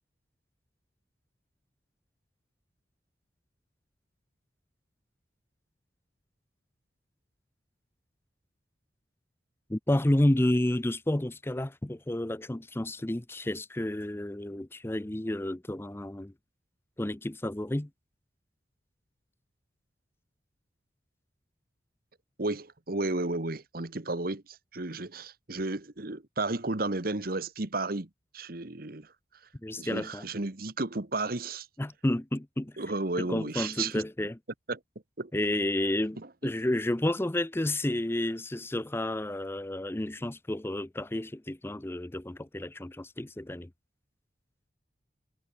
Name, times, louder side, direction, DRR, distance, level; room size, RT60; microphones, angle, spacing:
voice 1, 9.7-16.3 17.0-17.9 29.6-30.2 31.8-32.7 33.2-34.4 35.3-36.2 36.4-43.7, left 1 dB, 10° left, 0.6 m, -30 dB
voice 2, 22.4-29.1 29.8-31.7 32.8-34.0 34.7-34.8 35.2-35.3 36.2-36.3, right 2 dB, 50° right, 1.4 m, -33 dB
head